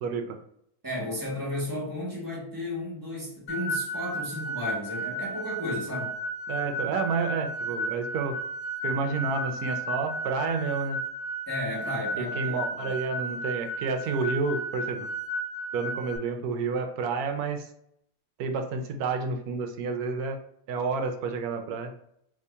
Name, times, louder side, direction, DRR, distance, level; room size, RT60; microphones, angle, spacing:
voice 1, 0.0-0.4 6.5-8.4 8.8-11.0 12.2-15.1 15.7-17.7 18.4-20.4 20.7-21.9, right 4 dB, 70° right, 5 dB, 1.0 m, -30 dB
voice 2, 0.8-6.1 11.5-13.0, left 1 dB, 15° right, -5 dB, 1.0 m, -34 dB
sound 1, 3.5-16.2, right 1 dB, 85° left, 1.2 m, -33 dB
2.9 x 2.7 x 3.4 m, 0.71 s
omnidirectional pair, 1.8 m